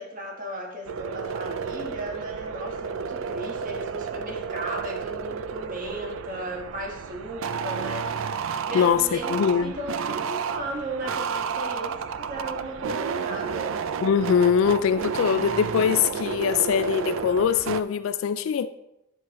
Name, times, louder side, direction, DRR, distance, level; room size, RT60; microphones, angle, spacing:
voice 1, 0.0-8.1 8.7-13.8, right 1 dB, 40° right, 1.3 m, -36 dB
sound 1, 0.9-17.8, right 6 dB, 70° right, 0.4 m, -31 dB
voice 2, 8.7-9.8 14.0-18.7, left 7 dB, 75° left, 0.3 m, -22 dB
11.0 x 5.9 x 3.1 m
head